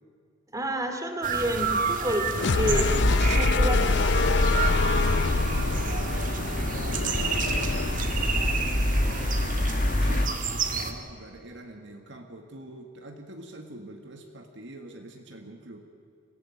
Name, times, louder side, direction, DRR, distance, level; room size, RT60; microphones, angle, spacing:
voice 1, 0.5-3.8, equal, 20° right, 5 dB, 2.6 m, -29 dB
sound 1, 1.2-10.9, right 5 dB, 45° right, 1.9 m, -31 dB
sound 2, 2.3-8.2, left 3 dB, 65° left, 0.6 m, -26 dB
sound 3, 2.7-10.3, left 1 dB, 45° left, 1.3 m, -28 dB
voice 2, 5.1-9.6 10.0-15.8, right 1 dB, 70° right, 4 dB, 1.8 m, -44 dB
25.0 x 15.5 x 9.4 m, 2.5 s
head